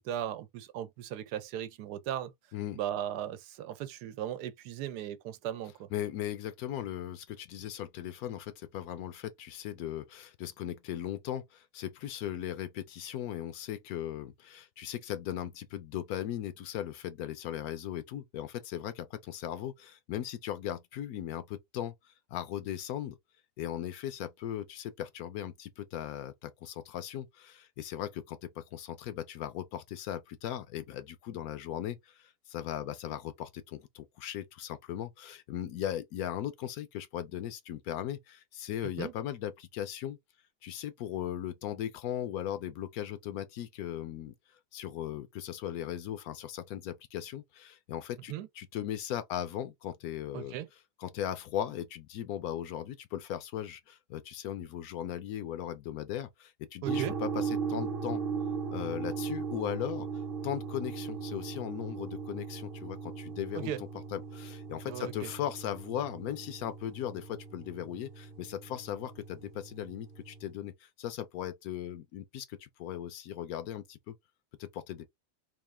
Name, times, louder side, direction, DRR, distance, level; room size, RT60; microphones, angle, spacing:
voice 1, 0.0-2.3 2.7-5.9 39.0-39.1 48.3-48.5 50.3-50.7 56.8-57.2 63.5-63.8 64.9-65.3, right 11 dB, 80° right, 1.2 m, -37 dB
voice 2, 5.9-23.2 23.6-40.2 40.6-44.3 44.7-50.5 51.0-58.2 58.7-60.1 60.4-63.7 64.1-74.1 74.6-75.1, left 11 dB, 70° left, 1.0 m, -38 dB
sound 1, 56.8-70.5, right 6 dB, 40° right, 0.9 m, -38 dB
3.8 x 2.4 x 3.3 m
omnidirectional pair, 1.7 m